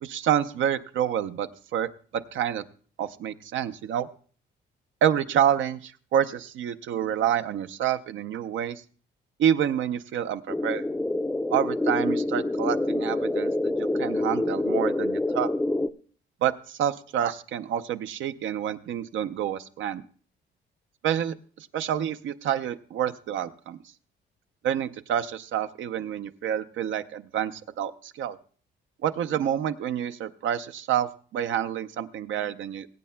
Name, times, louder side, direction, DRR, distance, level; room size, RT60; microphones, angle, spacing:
voice 1, 0.0-2.6 3.0-4.1 5.0-8.8 9.4-10.9 11.5-13.5 13.8-15.5 16.4-20.0 21.0-23.8 24.6-28.4 29.0-32.9, right 10 dB, 75° right, 10 dB, 0.6 m, -28 dB
sound 1, 10.5-15.9, left 2 dB, 5° left, 0.4 m, -26 dB
21.5 x 8.4 x 2.2 m, 0.42 s
cardioid pair, 90°, 20 cm